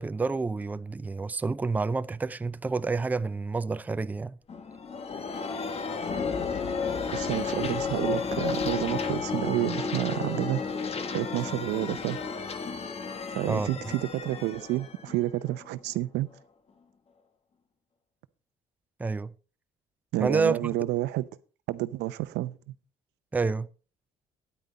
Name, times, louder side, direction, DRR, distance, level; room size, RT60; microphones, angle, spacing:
voice 1, 0.0-4.4 13.5-13.7 19.0-19.3 20.2-20.7 23.3-23.7, right 4 dB, 10° right, 0.4 m, -28 dB
sound 1, 4.5-16.0, left 5 dB, 35° left, 1.3 m, -32 dB
voice 2, 7.1-10.6 11.1-12.2 13.3-16.3 20.1-21.3 21.7-22.6, right 16 dB, 85° right, 0.6 m, -30 dB
9.8 x 9.0 x 4.1 m
cardioid pair, 110°, 17 cm